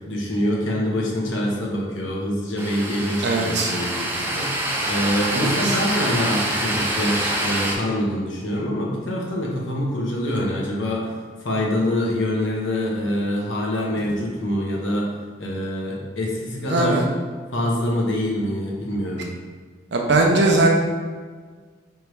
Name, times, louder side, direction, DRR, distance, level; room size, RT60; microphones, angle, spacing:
voice 1, 0.0-11.1 11.4-15.1 15.4-17.0 17.5-19.3, left 1 dB, 70° left, -2 dB, 1.0 m, -25 dB
sound 1, 2.6-7.8, right 1 dB, 10° right, 0.5 m, -25 dB
voice 2, 3.2-3.7 5.3-5.8 16.7-17.0 19.9-20.7, right 2 dB, 55° right, 1 dB, 0.7 m, -20 dB
3.4 x 3.1 x 4.7 m, 1.6 s
head